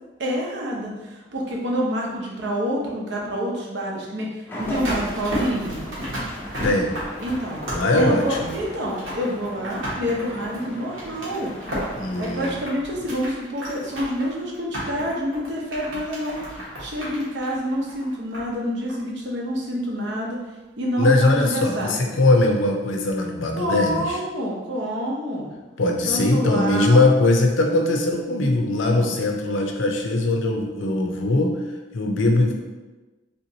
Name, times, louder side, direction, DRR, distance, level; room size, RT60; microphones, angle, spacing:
voice 1, 0.2-5.8 7.2-7.6 7.9-11.5 12.2-20.4 20.8-22.1 23.6-25.5 26.1-27.0 28.9-29.2, equal, 65° right, -2 dB, 0.7 m, -27 dB
sound 1, 4.5-12.5, equal, 10° left, 0.4 m, -38 dB
sound 2, 4.6-18.6 18.9-19.0, equal, 85° right, 1.2 m, -34 dB
voice 2, 6.6-6.9 7.7-8.6 12.0-12.6 21.0-24.2 25.8-31.6 31.9-32.6, left 2 dB, 90° left, 3 dB, 0.5 m, -20 dB
3.4 x 2.9 x 2.7 m, 1.2 s
head